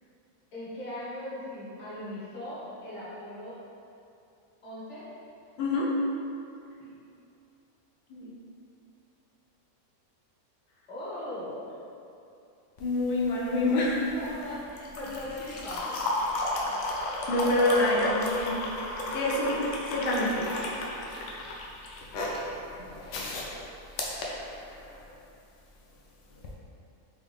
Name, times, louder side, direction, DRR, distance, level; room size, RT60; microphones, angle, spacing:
voice 1, 0.5-3.6 4.6-5.0 6.8-7.0 10.9-11.7 14.1-16.0 22.6-23.1, left 1 dB, 25° left, -10 dB, 0.9 m, -39 dB
voice 2, 12.8-14.1 17.3-18.5 19.1-19.6 19.9-20.5, left 1 dB, 85° left, -4 dB, 1.2 m, -26 dB
sound 1, 12.8-25.1 26.3-26.5, left 2 dB, 65° left, 0.8 m, -34 dB
4.0 x 2.5 x 3.3 m, 2.7 s
omnidirectional pair, 1.6 m